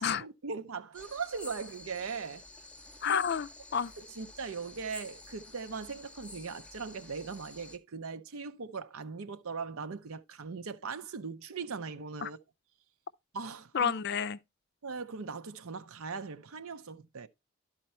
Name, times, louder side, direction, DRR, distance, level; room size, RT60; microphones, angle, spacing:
voice 1, 0.0-2.4 3.0-3.3 4.0-12.4 13.3-13.9 14.8-17.3, right 5 dB, 75° right, 0.6 m, -40 dB
sound 1, 0.9-7.8, left 2 dB, 5° left, 0.7 m, -50 dB
voice 2, 3.0-3.9 12.2-12.3 13.7-14.4, left 7 dB, 50° left, 0.4 m, -30 dB
12.0 x 4.4 x 4.4 m
head